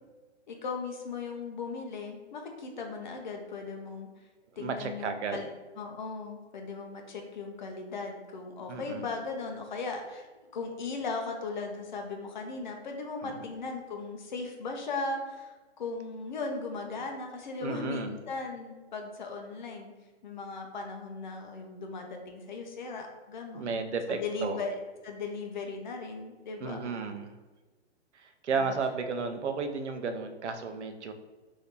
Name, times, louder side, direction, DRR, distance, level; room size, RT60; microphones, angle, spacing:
voice 1, 0.5-4.1 4.6-5.5 5.8-10.3 10.5-19.9 20.2-24.7 25.0-26.8 28.6-28.7, left 4 dB, 45° left, 3 dB, 0.5 m, -37 dB
voice 2, 4.5-5.5 8.7-9.1 13.2-13.4 17.6-18.1 23.5-24.6 26.6-27.4 28.1-31.1, right 4 dB, 75° right, 7 dB, 0.6 m, -33 dB
2.7 x 2.7 x 3.5 m, 1.2 s
hypercardioid pair, 155°, 35 cm